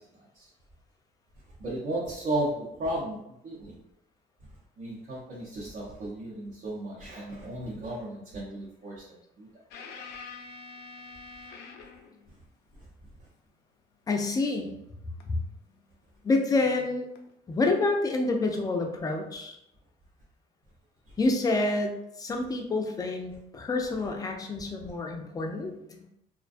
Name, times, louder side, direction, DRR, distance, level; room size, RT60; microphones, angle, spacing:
voice 1, 1.6-3.8 4.8-9.5 23.8-23.9, right 1 dB, 50° right, -6 dB, 0.7 m, -34 dB
sound 1, 9.7-12.2 15.2-15.4 17.2-17.3, left 4 dB, 80° left, 0.4 m, -45 dB
voice 2, 14.1-14.7 15.3-15.4 16.2-17.1 17.5-19.6 21.2-25.8, left 2 dB, 20° left, 2 dB, 0.4 m, -28 dB
2.5 x 2.2 x 2.5 m, 0.79 s
cardioid pair, 110°, 17 cm